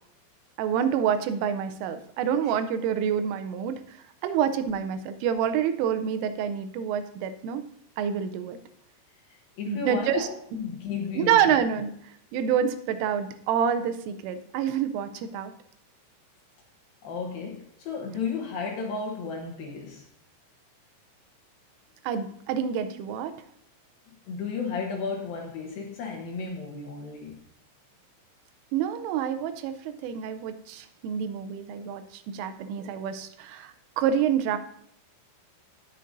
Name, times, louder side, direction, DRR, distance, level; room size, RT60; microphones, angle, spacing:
voice 1, 0.6-4.0 4.2-7.6 8.0-8.6 9.7-10.3 11.2-11.9 12.3-15.5 22.0-23.3 28.7-34.6, right 8 dB, 85° right, 10 dB, 3.1 m, -27 dB
voice 2, 9.3-11.6 17.0-20.1 24.3-27.4, left 5 dB, 80° left, 0 dB, 2.0 m, -34 dB
18.0 x 6.6 x 2.6 m, 0.71 s
omnidirectional pair, 5.8 m